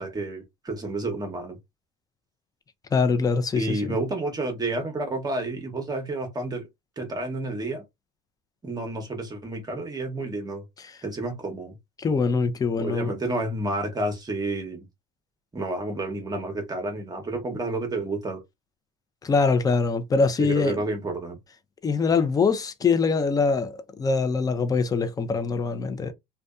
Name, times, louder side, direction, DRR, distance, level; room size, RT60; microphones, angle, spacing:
voice 1, 0.0-1.6 3.5-6.7 7.0-7.8 8.6-10.6 11.0-11.8 12.8-14.9 15.5-18.4 20.4-21.4, right 2 dB, 20° right, 0.8 m, -30 dB
voice 2, 2.9-4.0 10.9-11.0 12.0-13.1 19.2-20.8 21.8-26.1, left 4 dB, 20° left, 0.4 m, -23 dB
2.5 x 2.2 x 2.3 m
supercardioid pair, 100°, 18 cm